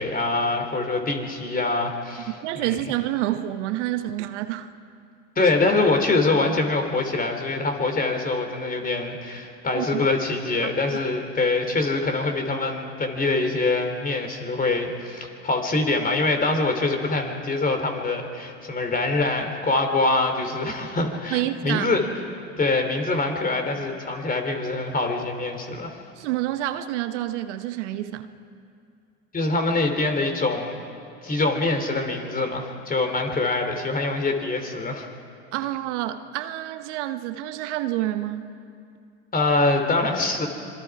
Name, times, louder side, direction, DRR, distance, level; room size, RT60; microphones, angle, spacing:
voice 1, 0.0-2.3 2.5-2.8 5.3-22.0 22.6-26.0 29.3-30.8 31.2-35.1 39.3-40.5, left 3 dB, 25° left, 4 dB, 3.3 m, -24 dB
voice 2, 2.3-4.7 9.7-10.0 21.3-21.9 26.1-28.3 35.5-38.5, right 14 dB, 75° right, 9 dB, 1.1 m, -28 dB
26.0 x 21.5 x 4.9 m, 2.4 s
hypercardioid pair, 90°, 36 cm